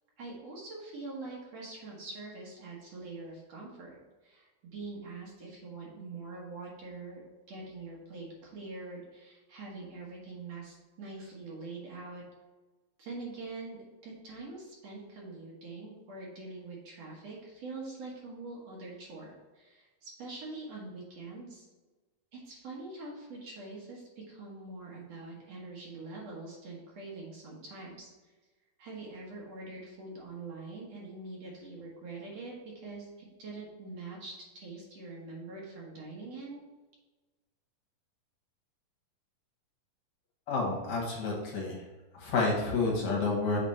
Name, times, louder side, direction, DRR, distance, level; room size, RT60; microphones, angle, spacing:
voice 1, 0.2-4.0 4.2-7.2 7.5-12.2 13.0-21.7 22.3-28.3 28.8-36.6, right 3 dB, 60° right, -3 dB, 2.2 m, -44 dB
voice 2, 40.5-41.8 42.2-43.6, left 3 dB, 60° left, -2 dB, 2.4 m, -29 dB
7.7 x 4.4 x 4.2 m, 1.2 s
omnidirectional pair, 3.8 m